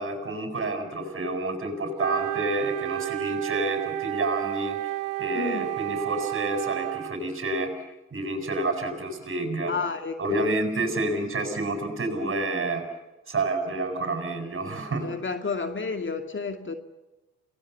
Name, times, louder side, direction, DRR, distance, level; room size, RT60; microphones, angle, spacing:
voice 1, 0.0-4.8 5.2-7.7 8.1-9.7 10.2-12.8 13.3-15.1, right 2 dB, 40° right, 7.7 m, -29 dB
Wind instrument woodwind instrument, 2.0-7.2, right 19 dB, 75° right, 0.9 m, -31 dB
voice 2, 5.3-5.7 9.7-10.6 15.0-16.8, left 4 dB, 35° left, 2.3 m, -31 dB
29.0 x 19.5 x 7.1 m
hypercardioid pair, 45°, 32 cm